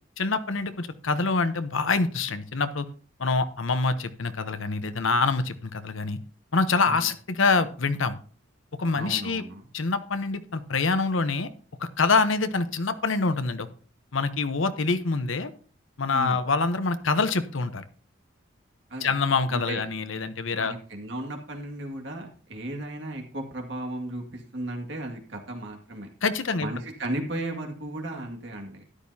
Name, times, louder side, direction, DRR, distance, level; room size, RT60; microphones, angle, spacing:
voice 1, 0.2-2.9 3.2-6.2 6.5-8.2 8.8-9.4 9.7-11.5 11.8-13.7 14.1-15.5 16.0-17.8 19.0-20.7 26.2-26.7, left 4 dB, 75° left, 11 dB, 0.9 m, -25 dB
voice 2, 8.9-9.7 16.1-16.4 18.9-19.1 19.5-19.8 20.5-26.1 26.6-28.8, right 1 dB, 60° right, 2 dB, 2.0 m, -35 dB
13.0 x 10.5 x 2.8 m, 0.43 s
head